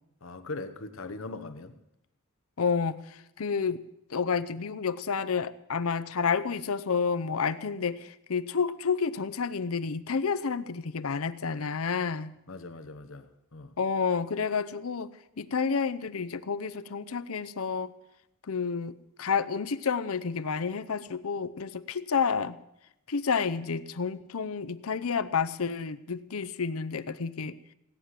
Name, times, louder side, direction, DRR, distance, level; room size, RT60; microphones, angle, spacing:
voice 1, 0.2-1.7 12.5-13.7, left 3 dB, 70° left, 9 dB, 1.1 m, -40 dB
voice 2, 2.6-3.8 4.1-12.3 13.8-17.9 18.5-22.6 23.1-27.6, left 5 dB, 85° left, 14 dB, 0.7 m, -30 dB
17.5 x 7.6 x 9.8 m, 0.84 s
head